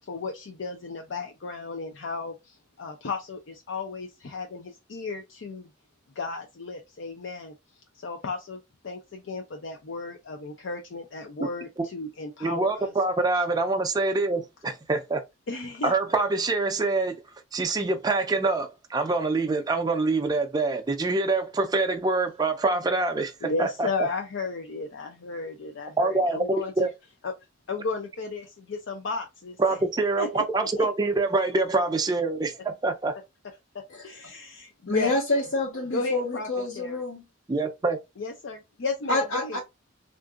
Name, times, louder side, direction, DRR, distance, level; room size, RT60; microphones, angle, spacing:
voice 1, 0.1-5.7 6.2-7.5 7.9-12.9 15.5-15.9 23.4-26.9 27.2-27.3 27.7-29.6 30.2-30.4 30.8-30.9 33.7-35.2 35.9-36.5 36.7-37.0 38.2-39.6, left 3 dB, 65° left, 0.5 m, -34 dB
voice 2, 12.4-15.2 15.8-17.2 17.5-23.9 26.0-26.9 29.6-33.1 37.5-38.0, right 3 dB, 20° right, 0.4 m, -25 dB
voice 3, 34.9-37.2 39.1-39.6, left 2 dB, 85° left, 1.2 m, -27 dB
3.6 x 2.5 x 2.3 m
head